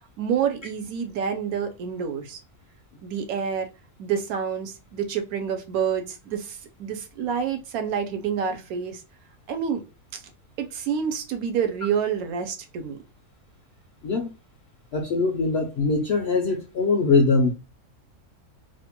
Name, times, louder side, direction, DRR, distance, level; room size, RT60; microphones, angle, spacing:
voice 1, 0.2-2.4 3.0-3.7 4.0-9.0 9.5-9.8 10.1-10.2 10.6-13.0, right 7 dB, 80° right, 1.0 m, -28 dB
voice 2, 14.9-17.5, left 3 dB, 70° left, 0.6 m, -22 dB
2.7 x 2.2 x 2.8 m
omnidirectional pair, 1.6 m